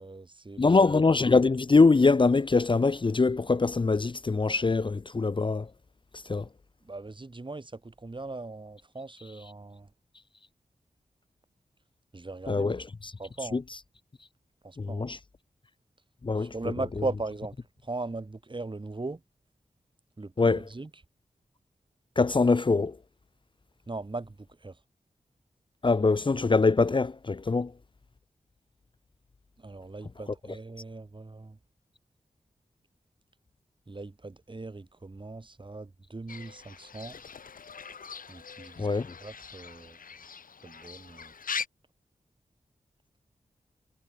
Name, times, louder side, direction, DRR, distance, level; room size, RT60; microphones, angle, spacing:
voice 1, 0.0-0.6 6.2-6.3 6.8-9.9 12.1-12.8 13.2-13.6 14.6-15.1 16.4-17.6 17.8-19.2 20.2-20.9 23.9-24.8 29.6-31.6 33.9-37.2 38.3-38.9 39.2-40.0 40.6-41.3, right 3 dB, 35° right, 2.3 m, -39 dB
voice 2, 0.6-5.7 6.3-6.4 12.5-12.8 13.5-13.6 14.8-15.2 16.2-16.5 20.4-20.6 22.2-22.9 25.8-27.7 38.8-39.1, left 3 dB, 35° left, 0.6 m, -23 dB
Fowl / Bird, 36.3-41.7, left 6 dB, 85° left, 3.9 m, -41 dB
cardioid pair, 45°, 14 cm